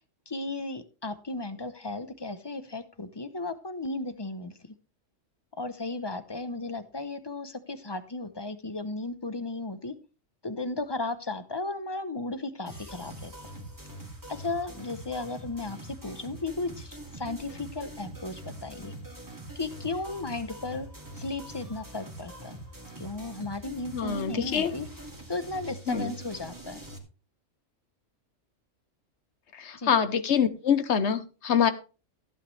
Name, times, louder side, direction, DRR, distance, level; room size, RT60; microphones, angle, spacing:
voice 1, 0.3-4.5 5.6-9.9 10.4-13.3 14.3-18.9 19.5-20.9 21.1-22.6 23.0-24.9 25.3-26.8 29.7-29.9, left 3 dB, 25° left, 12 dB, 0.7 m, -35 dB
sound 1, 12.7-27.0, right 1 dB, 15° right, 2.4 m, -44 dB
voice 2, 23.9-24.7 25.9-26.1 29.5-31.7, left 7 dB, 60° left, 12 dB, 1.2 m, -25 dB
14.5 x 8.6 x 3.3 m, 0.33 s
omnidirectional pair, 1.3 m